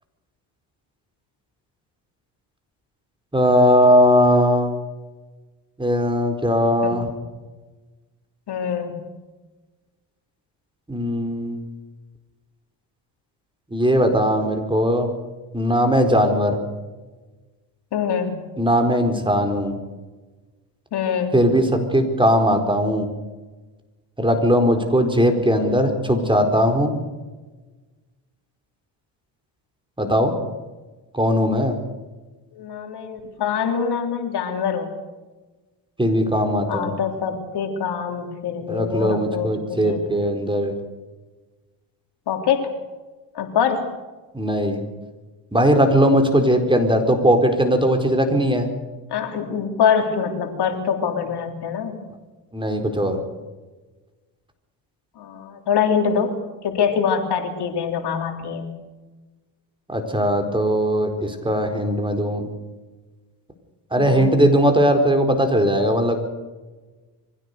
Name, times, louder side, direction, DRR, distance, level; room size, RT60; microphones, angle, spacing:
voice 1, 3.3-4.7 5.8-7.1 10.9-11.6 13.7-15.1 15.5-16.6 18.6-19.8 21.3-23.1 24.2-26.9 30.0-30.3 31.1-31.7 36.0-36.9 38.7-40.7 44.3-44.8 45.5-48.7 52.5-53.2 59.9-62.5 63.9-66.2, equal, 10° right, 5 dB, 4.4 m, -19 dB
voice 2, 8.5-9.0 17.9-18.5 20.9-21.4 32.6-34.9 36.7-40.0 42.3-42.7 43.4-43.9 49.1-52.0 55.2-56.4 56.6-58.7 64.0-64.4, left 7 dB, 60° left, 5 dB, 3.5 m, -24 dB
24.0 x 16.0 x 6.7 m, 1.2 s
cardioid pair, 85°, 45 cm